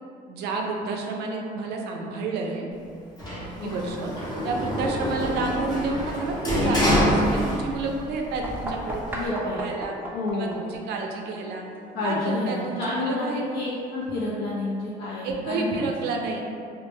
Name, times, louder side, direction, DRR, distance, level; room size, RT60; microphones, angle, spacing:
voice 1, 0.3-2.7 3.6-4.1 4.4-9.9 10.3-11.6 12.0-13.5 15.2-16.4, right 3 dB, 75° right, 1 dB, 0.4 m, -30 dB
Sliding door, 3.2-8.0 8.3-9.3, equal, 25° left, 0.7 m, -26 dB
sound 1, 8.4-14.0, right 1 dB, 10° right, 0.4 m, -38 dB
voice 2, 9.1-9.6 10.1-10.6 11.9-16.2, left 2 dB, 70° left, -7 dB, 0.4 m, -29 dB
2.1 x 2.0 x 3.1 m, 2.3 s
cardioid pair, 110°, 17 cm